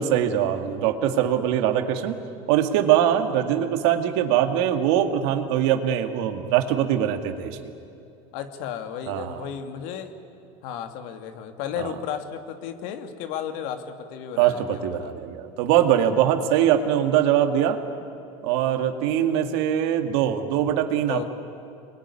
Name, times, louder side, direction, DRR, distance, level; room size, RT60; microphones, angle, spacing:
voice 1, 0.0-2.2 2.5-7.6 9.1-9.5 11.8-11.9 14.4-17.8 18.4-21.3, right 10 dB, 80° right, 6 dB, 2.2 m, -22 dB
voice 2, 8.3-10.1 10.6-15.1 20.9-21.3, left 9 dB, 75° left, 7 dB, 2.3 m, -34 dB
26.0 x 22.0 x 9.9 m, 2.8 s
supercardioid pair, 125°, 14 cm